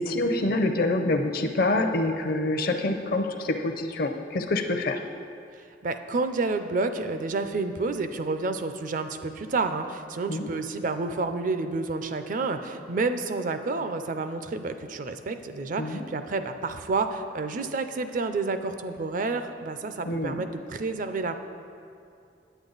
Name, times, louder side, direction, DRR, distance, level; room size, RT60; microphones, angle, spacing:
voice 1, 0.0-5.0 10.3-10.5 15.8-16.0 20.1-20.4, left 2 dB, 55° left, 6 dB, 0.6 m, -26 dB
voice 2, 5.8-21.4, right 3 dB, 50° right, 9 dB, 0.5 m, -29 dB
9.1 x 8.4 x 3.9 m, 2.5 s
head